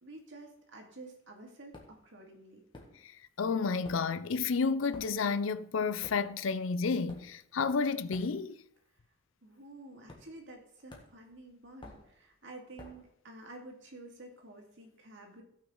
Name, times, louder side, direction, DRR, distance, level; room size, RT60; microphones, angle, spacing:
voice 1, 0.0-2.6 9.4-15.4, right 2 dB, 60° right, 2.3 m, -50 dB
sound 1, 1.7-2.1 2.7-3.4 3.6-8.8 9.0-9.3 10.1-10.6 10.9-13.1, left 2 dB, 25° left, 1.7 m, -53 dB
voice 2, 3.4-8.5, left 5 dB, 65° left, 0.5 m, -31 dB
17.0 x 6.2 x 3.9 m
head